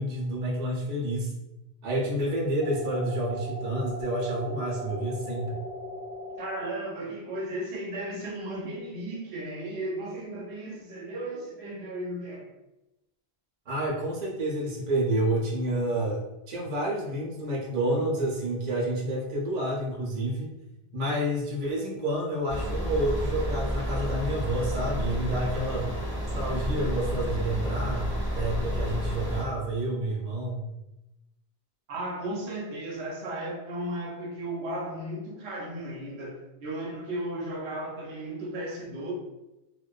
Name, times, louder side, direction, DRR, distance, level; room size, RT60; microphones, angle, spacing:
voice 1, 0.0-1.3 1.8-5.6 13.7-20.5 20.9-25.9 26.3-30.7, right 1 dB, 50° right, -4 dB, 0.7 m, -29 dB
sound 1, 2.6-6.6, equal, 60° left, 0.7 m, -37 dB
voice 2, 6.4-12.4 31.9-39.1, right 1 dB, 80° right, -1 dB, 0.9 m, -35 dB
sound 2, 22.5-29.4, equal, 10° right, 1.0 m, -30 dB
2.5 x 2.2 x 2.3 m, 0.96 s
omnidirectional pair, 1.1 m